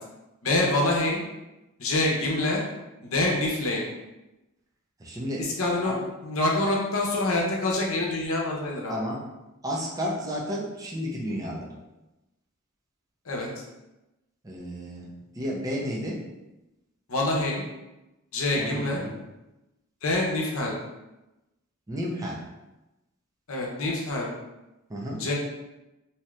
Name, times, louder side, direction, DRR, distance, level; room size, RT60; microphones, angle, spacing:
voice 1, 0.4-1.2 1.8-2.6 3.0-3.9 5.4-9.0 13.2-13.5 17.1-17.6 18.3-19.0 20.0-20.8 23.5-24.3 25.2-25.3, left 2 dB, 70° left, -2 dB, 0.7 m, -26 dB
voice 2, 5.0-5.4 5.8-5.9 8.9-9.2 9.6-11.7 14.4-15.1 15.4-16.2 18.6-19.2 21.9-22.4 24.9-25.2, equal, 15° right, -3 dB, 0.5 m, -32 dB
2.7 x 2.4 x 3.2 m, 0.98 s
head